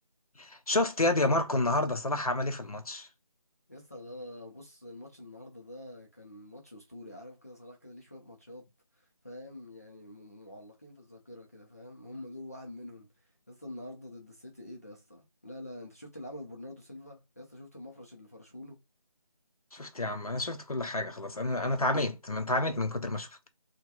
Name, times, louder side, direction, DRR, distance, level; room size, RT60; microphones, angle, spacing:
voice 1, 0.4-3.1 19.7-23.4, left 2 dB, 85° left, 0.7 m, -29 dB
voice 2, 3.7-8.7 9.0-13.1 13.5-18.8, left 1 dB, 25° left, 0.5 m, -46 dB
3.0 x 2.2 x 2.2 m
figure-of-eight pair, 165°, 18 cm